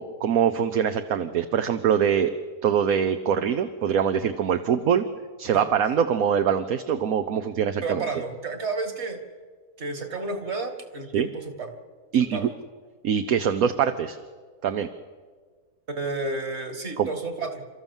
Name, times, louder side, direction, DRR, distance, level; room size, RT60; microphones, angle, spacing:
voice 1, 0.0-2.3 2.6-5.0 5.4-8.0 11.1-11.3 12.1-12.5 13.0-14.2 14.6-14.9 17.0-17.1, right 8 dB, 70° right, 8 dB, 1.2 m, -23 dB
voice 2, 7.8-9.2 9.8-11.7 12.3-12.5 15.9-17.7, right 3 dB, 45° right, 6 dB, 2.4 m, -31 dB
30.0 x 13.5 x 7.2 m, 1.5 s
omnidirectional pair, 1.6 m